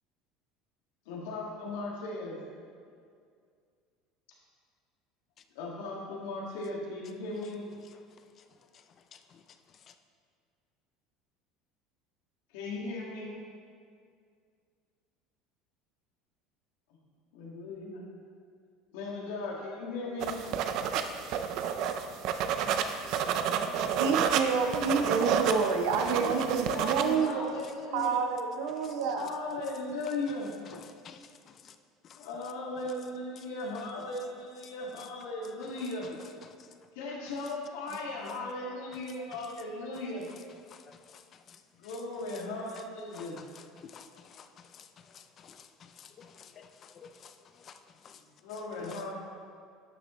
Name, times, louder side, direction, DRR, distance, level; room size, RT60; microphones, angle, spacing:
voice 1, 1.1-2.4 5.6-7.7 12.5-13.4 17.3-18.1 18.9-20.4 25.6-28.2 29.1-30.5 32.2-36.1 36.9-40.3 41.8-43.4 48.4-49.1, left 2 dB, 90° left, -2 dB, 2.0 m, -37 dB
sound 1, 20.2-27.1, right 8 dB, 45° right, 0.4 m, -30 dB
voice 2, 20.5-22.0 22.2-23.3 23.5-23.6 27.1-27.2 28.0-28.1 30.7-31.7 32.0-32.2 36.4-36.7 40.7-41.2 41.5-41.6 43.1-47.8 48.0-48.2 48.9-49.0, left 7 dB, 25° left, 8 dB, 0.4 m, -52 dB
voice 3, 24.0-27.5 27.9-29.3, right 5 dB, 90° right, 3 dB, 0.8 m, -28 dB
11.5 x 6.8 x 3.2 m, 2.2 s
cardioid pair, 180°, 0 cm